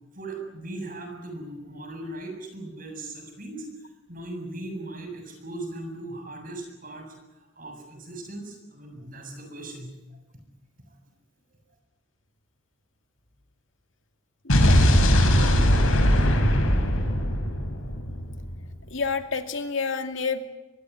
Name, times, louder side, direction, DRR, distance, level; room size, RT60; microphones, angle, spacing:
voice 1, 0.1-3.7 4.1-7.2 7.6-10.2, right 2 dB, 40° right, 3 dB, 7.2 m, -38 dB
voice 2, 14.4-14.9 18.9-20.5, left 5 dB, 65° left, 7 dB, 2.4 m, -29 dB
Explosion, 14.5-18.6, equal, 90° left, 5.4 m, -20 dB
24.0 x 21.0 x 9.4 m, 1.0 s
head